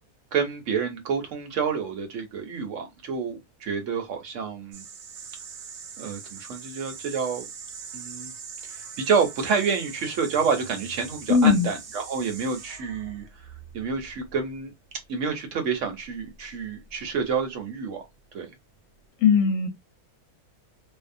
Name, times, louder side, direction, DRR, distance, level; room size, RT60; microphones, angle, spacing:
voice 1, 0.3-4.8 6.0-7.4 7.9-8.3 8.7-13.2 13.7-14.7 15.1-18.0 18.3-18.5, right 5 dB, 60° right, 0.9 m, -28 dB
sound 1, 4.7-15.3 16.0-17.4, right 6 dB, 80° right, 1.2 m, -42 dB
voice 2, 11.3-11.7 19.2-19.7, left 6 dB, 65° left, 1.0 m, -18 dB
2.7 x 2.0 x 2.5 m
omnidirectional pair, 1.6 m